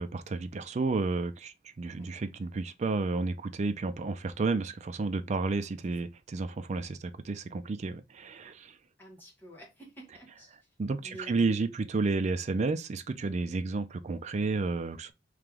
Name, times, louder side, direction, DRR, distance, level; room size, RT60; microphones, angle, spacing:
voice 1, 0.0-8.8 10.8-15.1, right 3 dB, 40° right, 0.4 m, -31 dB
voice 2, 9.0-10.5 11.0-11.6, equal, 10° left, 1.6 m, -49 dB
3.2 x 2.9 x 3.6 m
head